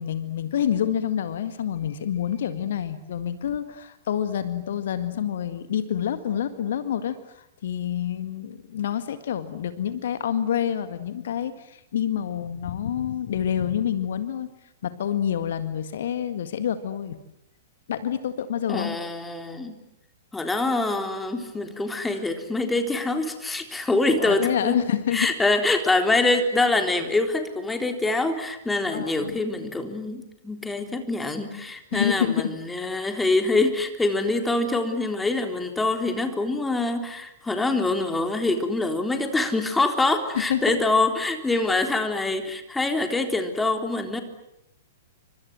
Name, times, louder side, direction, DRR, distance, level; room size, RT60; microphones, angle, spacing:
voice 1, 0.0-14.5 14.8-17.2 17.9-19.0 24.2-25.3 28.9-29.4 31.9-32.6 40.5-40.8 41.5-41.7, left 9 dB, 55° left, 11 dB, 1.8 m, -27 dB
voice 2, 18.7-19.7 20.3-24.8 25.1-44.2, left 2 dB, 10° left, 6 dB, 3.8 m, -25 dB
30.0 x 25.5 x 7.7 m, 0.82 s
figure-of-eight pair, 105°, 0 cm